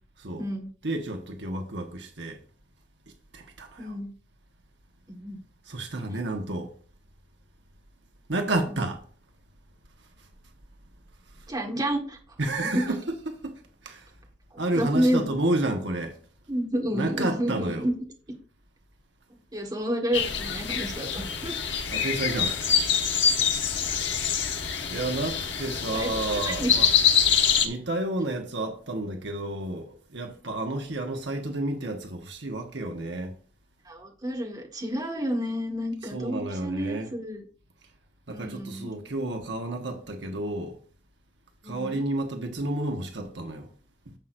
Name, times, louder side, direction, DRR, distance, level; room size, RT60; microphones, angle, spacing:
voice 1, 0.8-2.4 3.3-4.0 5.7-6.7 8.3-9.0 11.4-11.5 12.4-14.1 14.6-16.2 16.9-17.9 21.9-22.9 24.1-24.3 24.9-26.9 27.6-33.3 36.1-37.1 38.3-40.8 41.6-43.7 44.1-44.2, right 2 dB, 65° right, 1.3 m, -31 dB
voice 2, 3.8-4.1 5.1-5.4 8.7-8.8 11.5-12.2 12.6-12.8 14.7-15.3 16.5-17.9 19.5-21.5 25.9-26.8 33.8-37.4 38.3-38.9 41.6-42.0, equal, 20° right, 1.7 m, -30 dB
sound 1, 20.1-27.7, left 7 dB, 65° left, 1.1 m, -25 dB
10.5 x 7.5 x 2.6 m
head